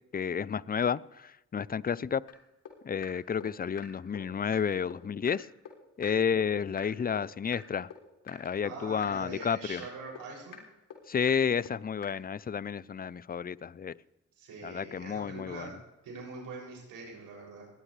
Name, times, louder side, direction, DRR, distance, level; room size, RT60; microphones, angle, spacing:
voice 1, 0.1-2.2 2.8-5.5 6.0-7.9 8.3-9.8 11.1-13.9 14.6-15.7, left 7 dB, 25° left, 0.6 m, -31 dB
sound 1, 2.3-2.4 2.6-2.7 3.0-3.1 3.4-3.5 3.8-3.9 4.1-4.2 4.5-4.6 4.9-5.0 5.3-5.4 5.6-5.7 6.0-6.1 6.4-6.5 6.8-6.9 7.1-7.2 7.5-7.6 7.9-8.0 8.3-8.4 8.6-8.7 9.0-9.1 9.4-9.5 9.8-9.9 10.1-10.2 10.5-10.6 10.9-11.0 11.3-11.4 11.6-11.7 12.0-12.1, left 10 dB, 75° left, 3.4 m, -45 dB
voice 2, 8.6-10.6 14.4-15.8 16.0-17.7, right 3 dB, 80° right, 6.9 m, -44 dB
20.0 x 18.5 x 3.3 m
hypercardioid pair, 45°, 34 cm